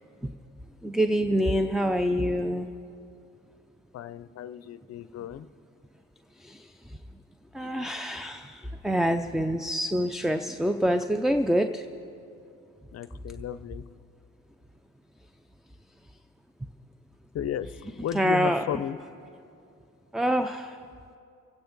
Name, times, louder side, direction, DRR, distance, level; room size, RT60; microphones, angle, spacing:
voice 1, 0.8-2.7 6.4-7.0 7.5-11.9 17.8-18.8 20.1-20.8, equal, ahead, 8 dB, 0.4 m, -26 dB
voice 2, 3.9-5.5 12.9-13.8 17.3-17.7 18.0-19.0, left 10 dB, 55° left, 14 dB, 0.5 m, -34 dB
28.0 x 9.3 x 3.9 m, 2.6 s
cardioid pair, 90°, 30 cm